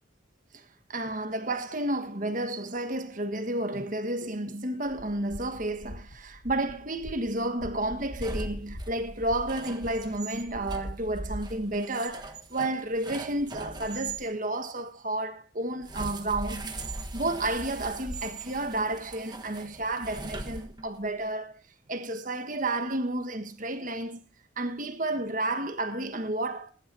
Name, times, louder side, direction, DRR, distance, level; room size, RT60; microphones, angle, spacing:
voice 1, 0.5-16.7 17.1-21.6 21.9-24.2 24.6-26.7, right 1 dB, 40° right, 1.5 m, -31 dB
sound 1, 4.9-10.2, left 1 dB, 65° left, 1.7 m, -46 dB
sound 2, 7.8-14.2 15.8-21.1, right 2 dB, 20° right, 1.3 m, -39 dB
21.0 x 11.5 x 2.8 m
head